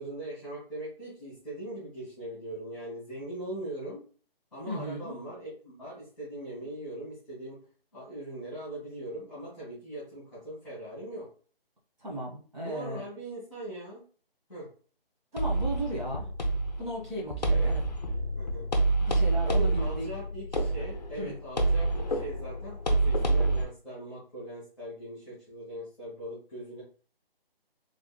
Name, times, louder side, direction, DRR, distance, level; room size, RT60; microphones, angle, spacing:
voice 1, 0.0-4.0 4.5-7.6 7.9-11.3 12.6-14.0 14.5-14.7 17.5-17.7 18.4-18.7 19.4-26.8, right 1 dB, ahead, -12 dB, 1.4 m, -40 dB
voice 2, 4.7-5.1 12.0-13.0 15.3-16.2 16.8-17.8 19.0-20.1 21.2-21.3, right 1 dB, 50° right, -4 dB, 1.6 m, -35 dB
sound 1, 15.4-23.6, right 2 dB, 45° left, 0.6 m, -27 dB
3.5 x 3.5 x 2.2 m, 0.40 s
hypercardioid pair, 180°, 30 cm